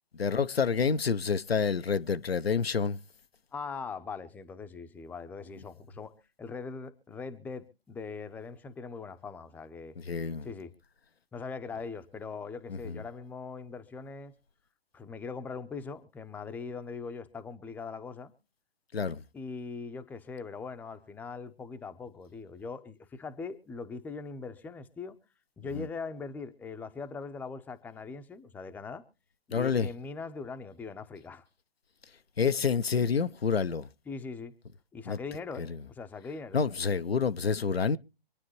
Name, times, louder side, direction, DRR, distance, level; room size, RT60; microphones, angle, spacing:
voice 1, 0.1-3.0 10.0-10.5 12.7-13.0 18.9-19.2 25.7-25.9 29.5-29.9 32.4-33.9 35.1-35.2 35.6-35.8 36.5-38.0, left 6 dB, 85° left, 0.8 m, -28 dB
voice 2, 3.5-9.9 10.4-10.7 11.3-14.3 14.9-18.3 19.3-25.2 25.6-29.0 29.5-31.4 34.1-34.5 34.9-36.6, left 4 dB, 5° left, 0.7 m, -41 dB
26.0 x 9.5 x 3.1 m
figure-of-eight pair, 130°, 29 cm